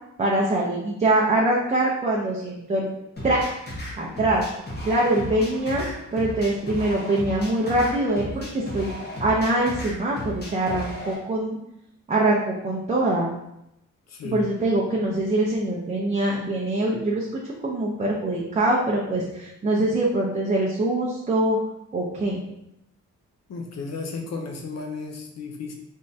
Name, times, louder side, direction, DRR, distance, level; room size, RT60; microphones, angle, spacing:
voice 1, 0.2-2.9 3.2-3.5 4.0-4.4 4.8-5.9 6.1-8.9 9.2-11.6 12.1-13.3 14.2-21.6 21.9-22.4, right 1 dB, 25° right, -4 dB, 0.6 m, -23 dB
sound 1, 3.2-11.2, equal, 35° left, 1.1 m, -35 dB
voice 2, 14.1-14.4 23.5-25.7, left 3 dB, 60° left, 2 dB, 0.7 m, -34 dB
3.6 x 3.2 x 2.7 m, 0.83 s
cardioid pair, 105°, 29 cm